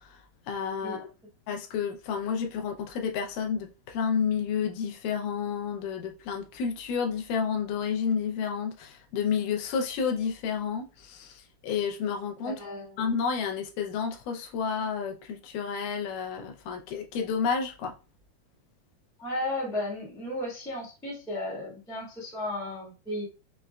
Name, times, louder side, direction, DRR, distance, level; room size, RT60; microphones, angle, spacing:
voice 1, 0.5-1.1 1.5-12.5 13.0-17.9, left 6 dB, 85° left, 2.2 m, -30 dB
voice 2, 12.4-13.0 19.2-23.2, left 1 dB, 5° left, 0.4 m, -34 dB
5.6 x 2.2 x 2.3 m
omnidirectional pair, 3.7 m